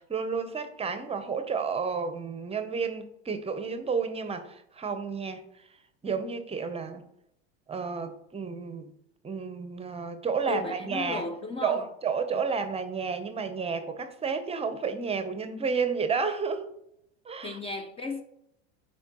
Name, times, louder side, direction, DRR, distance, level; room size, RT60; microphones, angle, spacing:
voice 1, 0.0-5.4 6.0-7.0 7.7-8.9 9.2-11.2 11.6-16.7 17.3-17.6, right 5 dB, 15° right, 0.7 m, -31 dB
voice 2, 10.5-11.9 12.3-12.4 17.4-18.2, left 3 dB, 15° left, 0.6 m, -35 dB
12.0 x 4.5 x 3.0 m
hypercardioid pair, 105°, 34 cm